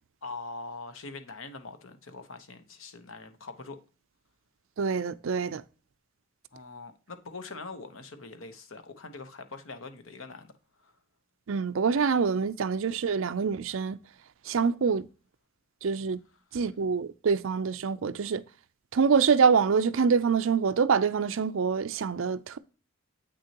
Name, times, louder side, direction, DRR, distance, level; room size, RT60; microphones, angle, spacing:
voice 1, 0.2-3.8 6.5-10.5 10.8-10.9 16.5-16.6, left 3 dB, 70° left, 1.0 m, -43 dB
voice 2, 4.8-5.6 11.5-14.0 14.5-15.1 15.8-16.2 16.5-18.4 18.9-22.6, right 5 dB, 65° right, 0.5 m, -25 dB
8.4 x 6.2 x 2.9 m
head